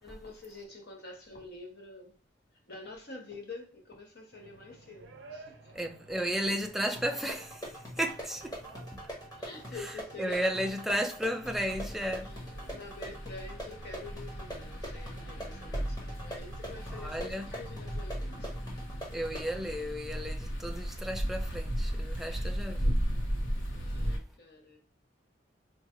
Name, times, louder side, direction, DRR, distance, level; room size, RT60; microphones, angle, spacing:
voice 1, 0.0-2.1 2.7-5.7 9.3-10.7 12.2-12.3 12.7-18.5 22.2-22.6 23.7-24.8, left 3 dB, 60° left, 1.0 m, -47 dB
sound 1, 4.3-12.8, right 3 dB, 80° right, 0.5 m, -53 dB
voice 2, 5.7-8.6 8.9-9.0 10.2-12.3 16.9-17.5 19.1-23.0, equal, ahead, 0.4 m, -34 dB
sound 2, 7.0-19.5, equal, 20° left, 1.2 m, -44 dB
sound 3, 11.4-24.2, equal, 90° left, 0.9 m, -36 dB
4.5 x 2.2 x 2.9 m
head